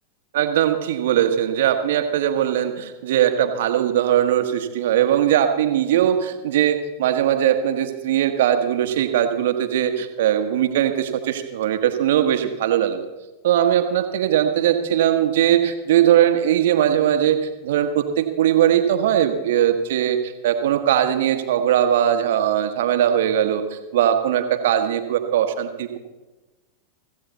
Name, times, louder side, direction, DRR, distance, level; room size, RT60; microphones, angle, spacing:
voice 1, 0.3-13.1 13.4-26.0, right 10 dB, 55° right, 8 dB, 1.3 m, -20 dB
16.5 x 14.5 x 4.1 m, 1.1 s
figure-of-eight pair, 90°, 0 cm